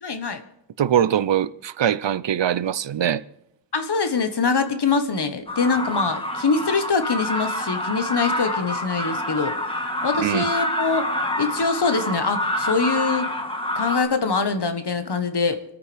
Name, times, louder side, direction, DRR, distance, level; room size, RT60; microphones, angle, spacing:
voice 1, 0.0-0.4 3.7-9.5 10.0-11.1 11.4-13.3 13.7-15.6, left 4 dB, 65° left, 1.3 m, -23 dB
voice 2, 0.8-3.2 10.2-10.5, right 10 dB, 80° right, 0.6 m, -22 dB
sound 1, 5.5-14.0, left 1 dB, 10° left, 1.6 m, -27 dB
27.5 x 9.3 x 3.4 m
wide cardioid pair, 85°, 43 cm